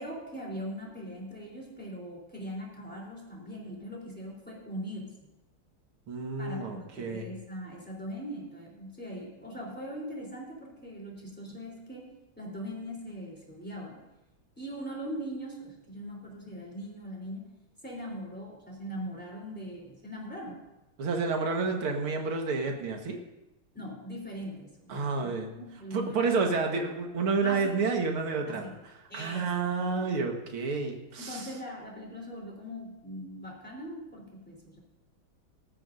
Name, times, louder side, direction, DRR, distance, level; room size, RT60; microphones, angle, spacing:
voice 1, 0.0-5.2 6.4-12.1 12.3-14.0 14.6-17.5 17.8-20.6 23.7-26.6 27.4-27.8 28.5-28.8 29.1-30.0 31.2-34.8, equal, 5° left, -3 dB, 3.4 m, -41 dB
voice 2, 6.1-7.3 21.0-23.2 24.9-25.5 25.9-28.7 29.1-31.5, right 4 dB, 90° right, 3 dB, 2.4 m, -30 dB
18.5 x 13.5 x 2.6 m, 0.97 s
omnidirectional pair, 2.3 m